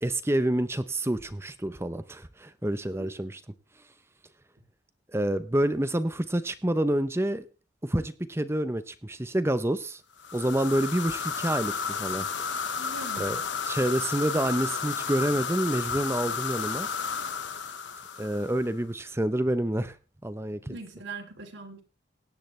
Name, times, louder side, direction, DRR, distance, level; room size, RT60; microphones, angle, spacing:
voice 1, 0.0-3.4 5.1-7.5 7.8-10.0 10.3-12.3 13.2-16.9 18.2-20.0 20.2-20.8, right 1 dB, 15° right, 12 dB, 0.7 m, -28 dB
sound 1, 10.2-18.7, left 5 dB, 80° left, 1.3 m, -32 dB
voice 2, 12.8-13.4 20.7-21.8, right 3 dB, 85° right, 3 dB, 3.2 m, -41 dB
17.5 x 10.5 x 3.3 m, 0.32 s
head